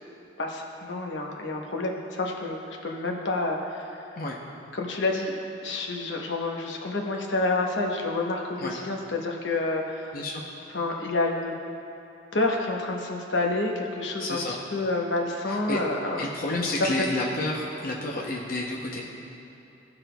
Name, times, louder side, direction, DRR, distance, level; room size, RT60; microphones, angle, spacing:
voice 1, 0.4-4.0 4.7-10.2 10.7-11.5 12.3-17.1, left 2 dB, 80° left, 0 dB, 0.9 m, -29 dB
voice 2, 14.2-14.6 15.5-15.8 16.2-19.0, left 2 dB, 50° left, -2 dB, 0.7 m, -30 dB
16.5 x 5.8 x 2.2 m, 2.9 s
head